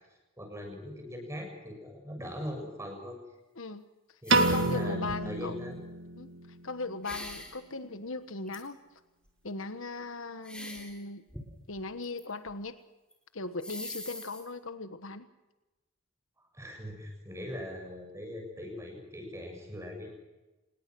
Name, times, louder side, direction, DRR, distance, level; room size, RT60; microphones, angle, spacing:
voice 1, 0.4-3.2 4.2-5.8 16.4-20.1, equal, 15° right, 2 dB, 7.1 m, -41 dB
sound 1, 4.2-4.8 5.1-5.4 7.0-7.6 8.5-8.6 10.4-11.0 11.3-12.2 12.5-12.6 13.1-13.2 13.6-14.4, left 1 dB, 5° left, 3.7 m, -42 dB
Piano, 4.3-6.6, right 2 dB, 55° right, 1.8 m, -28 dB
voice 2, 4.4-5.6 6.2-6.3 6.6-8.8 9.4-11.2 11.7-12.8 13.3-15.3, left 3 dB, 65° left, 10 dB, 1.3 m, -38 dB
27.0 x 21.0 x 6.2 m, 1.1 s
head